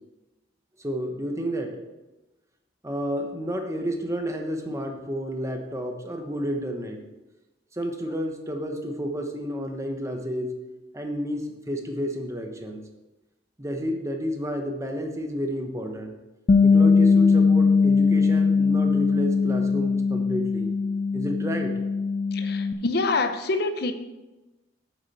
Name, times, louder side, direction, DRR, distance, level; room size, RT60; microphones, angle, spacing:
voice 1, 0.8-1.8 2.8-7.0 7.7-10.5 10.9-12.8 13.6-16.2 16.6-20.7 21.1-21.8, equal, 15° right, 3 dB, 1.0 m, -31 dB
Bass guitar, 16.5-22.7, left 4 dB, 35° left, 0.3 m, -20 dB
voice 2, 22.3-23.9, left 3 dB, 55° left, 8 dB, 0.7 m, -26 dB
8.7 x 7.6 x 4.3 m, 1.1 s
head